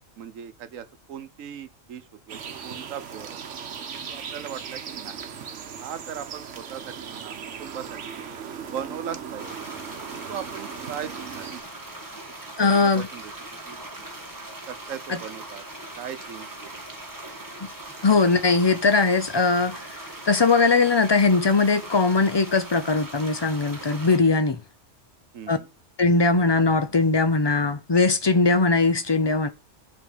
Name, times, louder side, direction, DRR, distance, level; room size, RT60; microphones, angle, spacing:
voice 1, 0.2-2.4 2.6-3.4 4.1-5.3 5.8-8.2 8.7-9.6 10.1-11.5 12.6-13.3 13.6-13.8 14.7-15.6 16.0-16.8 25.3-25.7, right 8 dB, 90° right, 1.2 m, -38 dB
sound 1, 2.3-11.6, right 7 dB, 70° right, 1.2 m, -38 dB
sound 2, 9.4-24.2, right 2 dB, 15° right, 1.4 m, -40 dB
voice 2, 12.6-13.1 15.1-15.2 17.6-17.7 18.0-19.9 20.3-24.6 25.5-25.6 26.0-29.5, left 3 dB, 35° left, 0.4 m, -20 dB
7.3 x 3.9 x 6.6 m
omnidirectional pair, 1.3 m